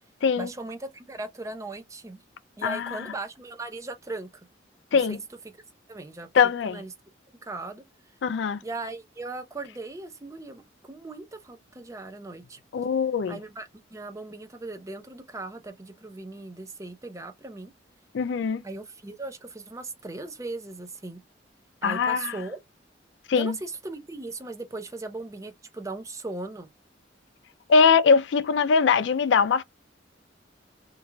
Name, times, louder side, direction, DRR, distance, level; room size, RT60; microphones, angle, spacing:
voice 1, 0.4-2.2 2.6-4.5 4.9-5.2 5.9-6.3 6.6-6.9 7.4-7.8 8.6-12.6 13.3-17.7 18.6-21.2 21.8-22.6 23.3-26.7, right 2 dB, 15° right, 0.5 m, -38 dB
voice 2, 2.6-3.0 4.9-5.2 6.3-6.8 8.2-8.6 12.7-13.4 18.1-18.6 21.8-22.3 23.3-23.5 27.7-29.6, left 5 dB, 70° left, 0.4 m, -22 dB
3.0 x 2.4 x 2.2 m
head